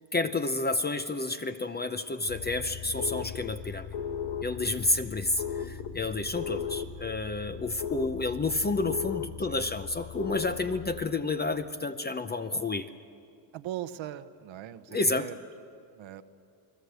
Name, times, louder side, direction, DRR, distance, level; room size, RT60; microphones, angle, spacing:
voice 1, 0.1-3.9 4.4-12.9 14.9-15.3, left 2 dB, 20° left, 9 dB, 0.7 m, -30 dB
sound 1, 2.3-11.0, left 7 dB, 80° left, 1.7 m, -37 dB
voice 2, 13.5-15.4 16.0-16.2, right 12 dB, 65° right, 11 dB, 1.1 m, -39 dB
29.0 x 19.5 x 8.1 m, 2.6 s
cardioid pair, 135°, 49 cm